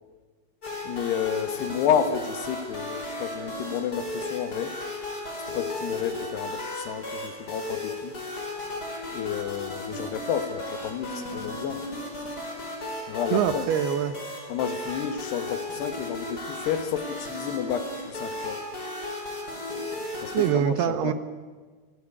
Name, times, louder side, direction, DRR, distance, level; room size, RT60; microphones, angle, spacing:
sound 1, 0.6-20.5, left 1 dB, 20° left, 4.8 m, -35 dB
voice 1, 0.8-4.8 5.5-8.1 9.1-11.9 13.1-13.7 14.5-18.7 20.2-21.1, left 8 dB, 70° left, 3.2 m, -30 dB
voice 2, 13.3-14.2 20.3-21.1, right 10 dB, 70° right, 2.8 m, -24 dB
28.0 x 17.0 x 9.9 m
omnidirectional pair, 5.2 m